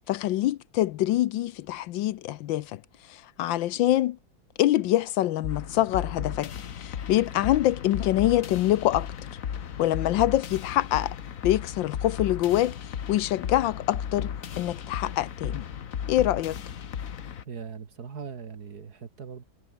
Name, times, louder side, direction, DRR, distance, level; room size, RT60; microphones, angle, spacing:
voice 1, 0.1-2.8 3.1-4.2 4.6-6.5 6.8-9.1 9.8-11.1 11.4-12.8 13.1-15.6 16.1-16.6, left 14 dB, 75° left, 1.3 m, -25 dB
sound 1, 5.4-17.4, left 8 dB, 50° left, 1.3 m, -35 dB
voice 2, 17.5-19.4, right 6 dB, 50° right, 2.2 m, -40 dB
omnidirectional pair, 2.2 m